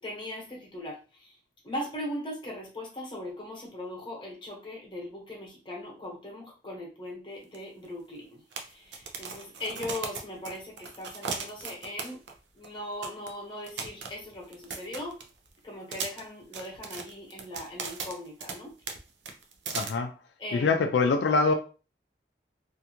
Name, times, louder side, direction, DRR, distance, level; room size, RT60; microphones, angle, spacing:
voice 1, 0.0-1.4 1.6-12.2 12.5-15.2 15.6-18.7 20.4-20.9, left 1 dB, 25° left, -2 dB, 0.9 m, -39 dB
sound 1, 7.5-7.6 7.8-7.9 8.5-12.4 12.6-12.7 13.0-13.3 13.7-15.5 15.9-18.6 18.9-19.0 19.3-19.9, right 5 dB, 85° right, 0.5 m, -37 dB
voice 2, 19.7-20.1 20.5-21.5, left 4 dB, 75° left, 5 dB, 0.3 m, -24 dB
2.5 x 2.3 x 2.8 m, 0.35 s
head